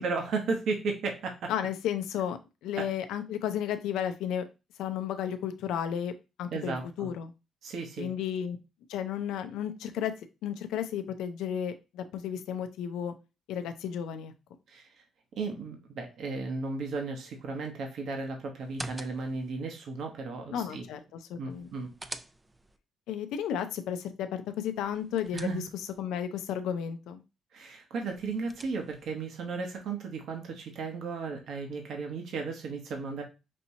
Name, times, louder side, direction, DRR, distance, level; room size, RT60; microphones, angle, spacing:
voice 1, 0.0-1.5 2.8-2.9 6.5-7.1 7.6-8.1 14.7-14.9 15.4-20.8 21.4-21.9 25.3-25.7 27.5-33.2, right 4 dB, 70° right, 3 dB, 1.0 m, -35 dB
voice 2, 1.5-4.5 4.8-6.1 6.4-7.3 8.0-8.6 8.9-10.1 10.4-13.1 13.5-14.3 20.5-21.7 23.1-25.6 26.0-27.2, left 9 dB, 90° left, 9 dB, 0.5 m, -33 dB
sound 1, 18.6-19.5 21.5-22.8 24.8-26.0 28.0-29.1, right 1 dB, 15° right, 0.4 m, -45 dB
5.3 x 2.9 x 2.7 m, 0.27 s
cardioid pair, 90°, 0 cm